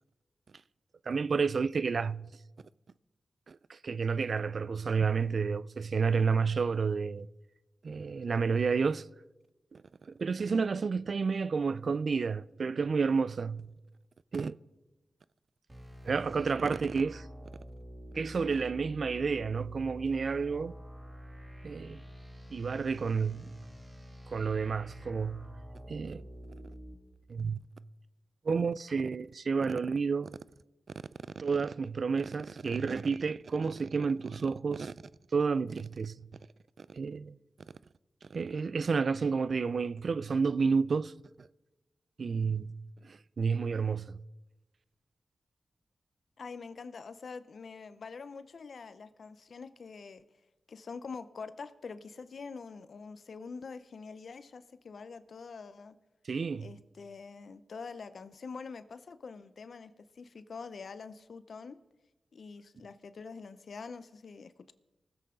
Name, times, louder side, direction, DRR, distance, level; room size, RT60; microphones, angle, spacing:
voice 1, 1.1-2.3 3.5-7.3 7.8-9.0 9.7-9.8 10.2-13.7 14.3-14.6 16.0-17.3 18.1-20.7 21.6-22.0 22.5-23.5 24.3-25.5 25.9-26.2 27.3-27.6 28.5-30.4 31.4-34.9 35.3-36.3 36.8-37.4 38.3-41.1 41.4-41.5 42.2-42.8 43.0-44.2 56.3-56.7, right 5 dB, 70° right, 0.3 m, -30 dB
sound 1, 15.7-27.0, equal, 30° right, 3.1 m, -48 dB
voice 2, 46.4-50.2 50.7-56.0 56.6-61.8 62.3-64.7, left 5 dB, 75° left, 0.6 m, -45 dB
19.5 x 7.9 x 3.8 m
cardioid pair, 45°, 0 cm